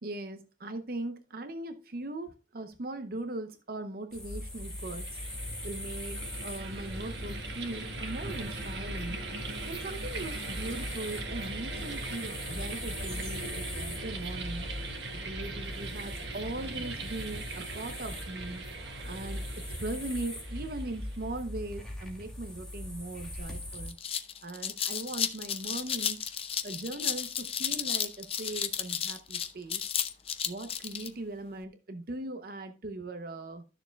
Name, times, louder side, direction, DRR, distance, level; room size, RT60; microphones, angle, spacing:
voice 1, 0.0-5.2 5.6-6.2 6.4-9.2 9.7-14.7 15.1-18.6 19.0-24.0 24.4-26.2 26.6-29.9 30.5-33.6, right 2 dB, 55° right, 0.7 m, -39 dB
sound 1, 4.1-23.9, left 1 dB, 5° left, 2.3 m, -41 dB
sound 2, 4.6-21.3, right 3 dB, 75° right, 1.5 m, -40 dB
sound 3, 23.3-23.4 23.7-31.1, left 8 dB, 30° left, 0.6 m, -33 dB
12.5 x 6.8 x 2.3 m
head